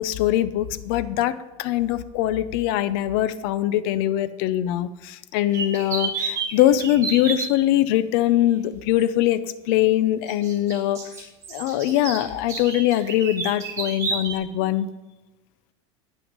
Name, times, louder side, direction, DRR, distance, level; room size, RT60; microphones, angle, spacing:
voice 1, 0.0-9.4 9.7-14.9, left 13 dB, 50° left, 15 dB, 0.4 m, -22 dB
sound 1, 5.5-7.5 8.9-9.0 10.3-14.3, right 4 dB, 20° right, 1.4 m, -30 dB
8.8 x 6.0 x 5.2 m, 1.1 s
cardioid pair, 180°, 15 cm